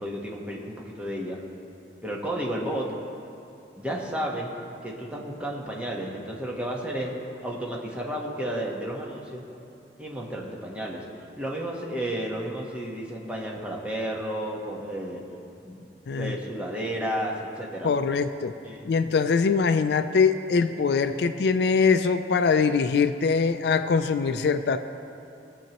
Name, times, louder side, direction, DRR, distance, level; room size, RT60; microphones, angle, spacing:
voice 1, 0.0-1.4 2.0-2.9 3.8-4.6 4.8-7.2 7.4-9.4 10.0-11.0 11.4-15.2 15.6-15.9 16.2-17.9 18.6-18.9, right 1 dB, 5° right, -3 dB, 1.1 m, -32 dB
voice 2, 16.1-16.4 17.8-18.5 18.8-24.8, left 5 dB, 65° left, 10 dB, 0.4 m, -23 dB
20.0 x 7.2 x 3.0 m, 2.7 s
head